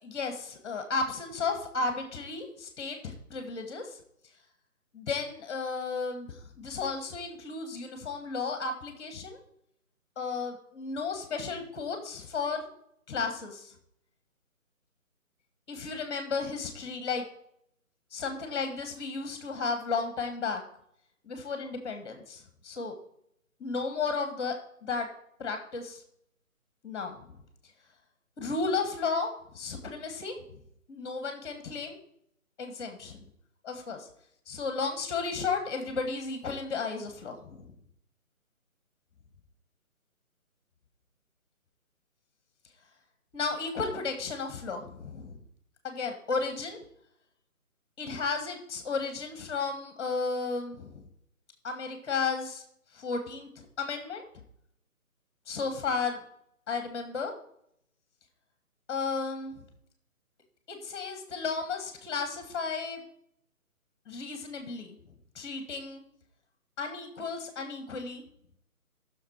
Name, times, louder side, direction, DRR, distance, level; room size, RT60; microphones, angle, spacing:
voice 1, 0.0-4.0 4.9-9.4 10.1-12.7 13.1-13.7 15.7-17.3 18.1-20.6 21.2-22.9 23.6-25.1 25.4-26.0 26.8-27.2 28.4-30.6 30.9-32.0 32.6-33.2 33.6-34.1 34.5-37.7 43.3-45.4 45.8-46.8 48.0-51.1 51.6-52.6 52.9-54.2 55.5-56.2 56.7-57.3 58.9-59.6 60.7-63.0 64.1-65.0 65.3-66.0 66.8-68.2, left 4 dB, 20° left, 6 dB, 1.6 m, -33 dB
13.5 x 6.6 x 4.6 m, 0.71 s
figure-of-eight pair, 155°, 44 cm